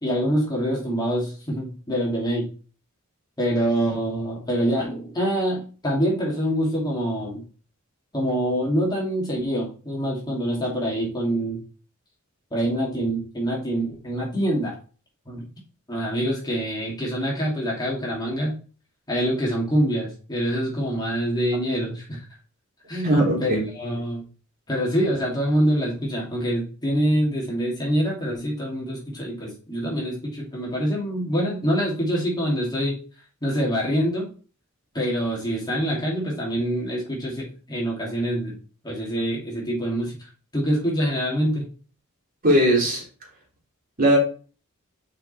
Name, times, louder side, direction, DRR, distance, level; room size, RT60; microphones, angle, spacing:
voice 1, 0.0-2.5 3.4-7.4 8.1-11.6 12.5-14.7 15.3-15.4 15.9-18.5 19.1-22.2 22.9-24.3 24.7-33.0 33.4-34.3 34.9-38.6 38.8-40.1 40.5-41.7, equal, 20° left, 2.7 m, -25 dB
voice 2, 23.0-23.6 42.4-43.0 44.0-44.2, right 1 dB, 45° right, 3.2 m, -19 dB
6.6 x 5.4 x 4.3 m
head